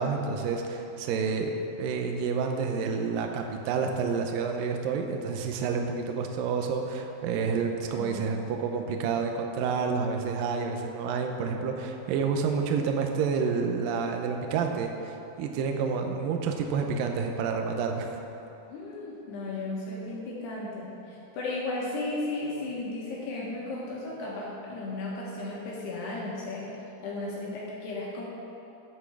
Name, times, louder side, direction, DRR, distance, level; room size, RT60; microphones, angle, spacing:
voice 1, 0.0-18.2, right 5 dB, 75° right, 3 dB, 2.2 m, -29 dB
voice 2, 7.9-8.2 18.7-28.2, left 2 dB, 80° left, -5 dB, 3.5 m, -35 dB
8.5 x 8.1 x 7.2 m, 2.9 s
omnidirectional pair, 4.7 m